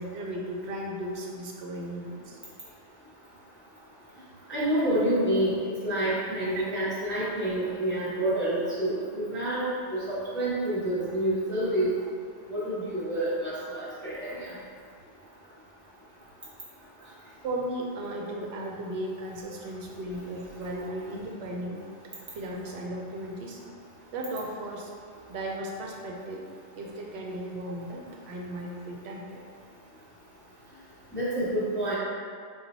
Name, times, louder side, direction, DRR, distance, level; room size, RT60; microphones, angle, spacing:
voice 1, 0.0-2.4 6.5-6.6 17.4-21.8 22.3-23.6 24.1-24.9 25.3-26.4 26.8-29.4, right 1 dB, 65° right, -1 dB, 0.8 m, -36 dB
voice 2, 4.5-5.6 5.8-11.9 12.5-14.5 31.1-31.9, right 1 dB, 15° left, -10 dB, 0.6 m, -28 dB
4.0 x 2.2 x 4.0 m, 2.2 s
omnidirectional pair, 1.2 m